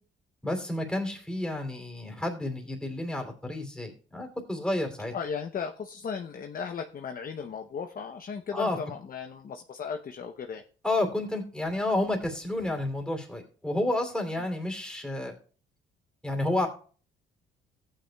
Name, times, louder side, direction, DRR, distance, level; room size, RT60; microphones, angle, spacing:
voice 1, 0.4-5.1 8.5-8.8 10.8-15.3 16.2-16.7, left 1 dB, 5° left, 2 dB, 2.9 m, -30 dB
voice 2, 5.1-10.6, left 6 dB, 45° left, 5 dB, 0.7 m, -36 dB
14.5 x 9.0 x 2.3 m, 0.42 s
cardioid pair, 90°, 20 cm